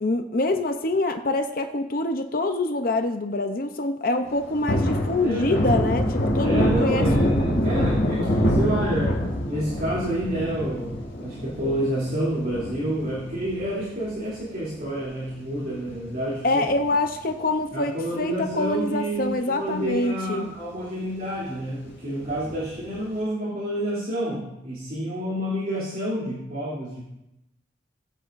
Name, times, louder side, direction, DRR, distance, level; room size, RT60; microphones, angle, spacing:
voice 1, 0.0-7.3 7.6-7.7 16.4-20.5, left 2 dB, 50° left, 6 dB, 0.7 m, -25 dB
Thunder, 4.3-15.0 15.4-15.5 15.8-17.3 17.6-17.8 18.1-18.9 19.3-19.4 19.8-19.9 22.2-22.8, equal, 75° left, 2.6 m, -26 dB
voice 2, 5.2-5.6 6.4-16.7 17.7-27.0, right 1 dB, 50° right, -9 dB, 3.1 m, -29 dB
19.5 x 8.4 x 2.6 m, 0.90 s
head